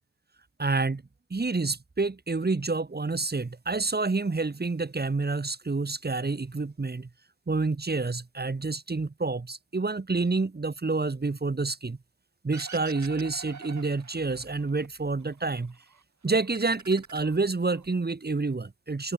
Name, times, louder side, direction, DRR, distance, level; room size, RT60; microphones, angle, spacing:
voice 1, 0.6-1.0 1.3-7.1 7.5-12.0 12.4-15.8 16.2-19.1, right 3 dB, 20° right, 1.8 m, -28 dB
sound 1, 12.5-14.9 15.2-16.0 16.4-17.9, right 5 dB, 35° right, 3.1 m, -46 dB
supercardioid pair, 55°, 49 cm